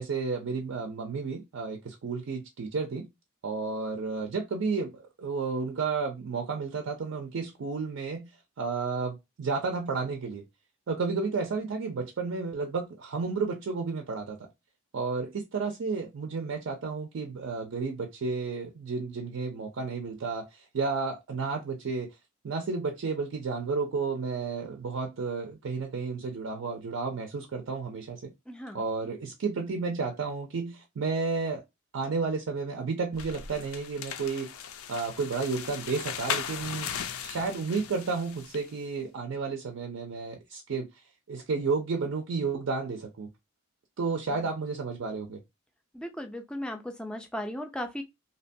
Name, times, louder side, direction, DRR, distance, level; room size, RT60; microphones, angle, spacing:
voice 1, 0.0-3.1 3.4-8.3 8.6-10.5 10.9-14.5 14.9-22.1 22.4-28.3 28.7-31.6 31.9-34.5 34.9-36.9 37.2-40.9 41.3-43.3 44.0-45.4, right 4 dB, 60° right, 0.4 m, -32 dB
voice 2, 28.5-28.9 44.3-44.4 45.9-48.0, left 1 dB, 5° left, 0.3 m, -36 dB
sound 1, 33.1-38.7, left 8 dB, 75° left, 0.4 m, -37 dB
2.7 x 2.2 x 2.6 m
head